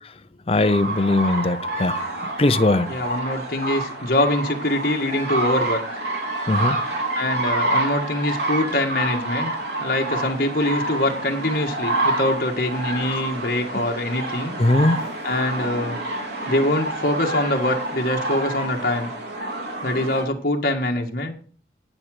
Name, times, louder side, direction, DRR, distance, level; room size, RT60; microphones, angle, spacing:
voice 1, 0.5-2.9 6.5-6.8 14.6-15.0, left 2 dB, 30° left, 0.5 m, -20 dB
sound 1, 0.6-20.2, right 2 dB, 70° right, 4.2 m, -28 dB
voice 2, 2.9-5.8 7.2-9.5 9.8-14.6 15.2-16.0 16.5-19.1 19.8-21.3, left 1 dB, 50° left, 1.7 m, -24 dB
11.5 x 9.0 x 4.9 m
head